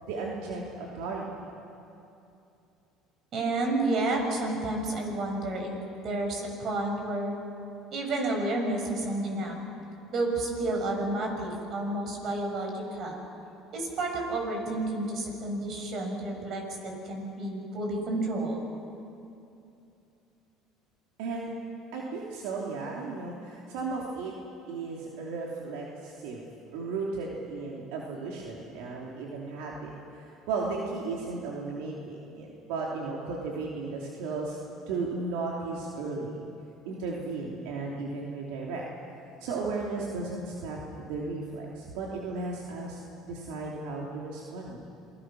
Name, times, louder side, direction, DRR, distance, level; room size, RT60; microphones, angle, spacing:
voice 1, 0.0-1.5 21.2-21.5 21.9-24.3 24.7-26.4 26.7-34.6 34.9-36.5 36.8-38.8 39.4-44.8, right 3 dB, 80° right, -3 dB, 3.0 m, -35 dB
voice 2, 3.3-7.3 7.9-9.5 10.1-13.2 13.7-18.6, right 2 dB, 50° right, 2 dB, 6.9 m, -30 dB
28.0 x 21.0 x 6.3 m, 2.7 s
supercardioid pair, 85°, 0 cm